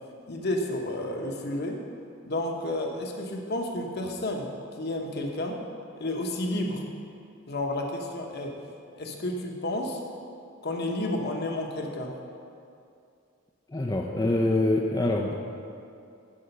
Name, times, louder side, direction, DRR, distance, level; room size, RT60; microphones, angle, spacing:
voice 1, 0.3-1.8 2.2-4.5 4.8-5.6 6.0-6.8 7.5-8.6 9.0-10.0 10.6-12.2, left 1 dB, 50° left, 2 dB, 1.0 m, -31 dB
voice 2, 13.7-15.3, left 2 dB, 20° left, 0 dB, 0.4 m, -25 dB
11.0 x 4.9 x 5.4 m, 2.5 s
head